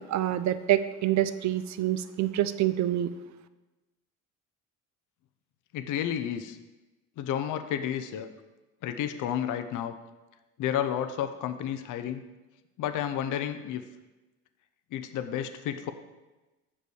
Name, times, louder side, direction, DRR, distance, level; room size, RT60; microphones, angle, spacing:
voice 1, 0.0-3.1, right 12 dB, 55° right, 13 dB, 0.6 m, -26 dB
voice 2, 5.7-6.6 7.2-8.3 8.8-9.9 10.6-12.2 12.8-13.8 14.9-15.9, left 10 dB, 60° left, 9 dB, 0.7 m, -31 dB
6.9 x 5.4 x 6.3 m, 1.1 s
supercardioid pair, 90°, 34 cm